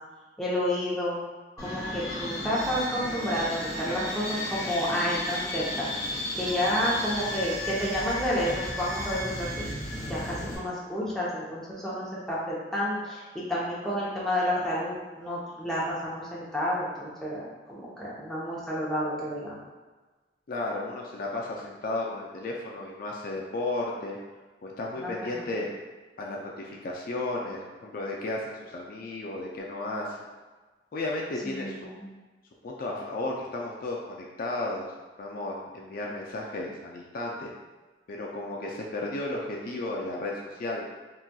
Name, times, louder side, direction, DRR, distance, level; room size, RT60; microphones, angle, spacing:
voice 1, 0.4-1.2 1.6-9.7 10.1-19.5 25.0-25.5 31.4-32.1, equal, 5° left, -8 dB, 0.7 m, -30 dB
sound 1, 1.6-10.6, left 1 dB, 20° left, 1.4 m, -34 dB
voice 2, 20.5-24.2 24.6-25.7 26.2-30.2 30.9-31.9 32.6-34.9 35.2-37.5 38.1-40.9, left 2 dB, 55° left, -2 dB, 0.4 m, -34 dB
3.9 x 2.3 x 2.2 m, 1.3 s
head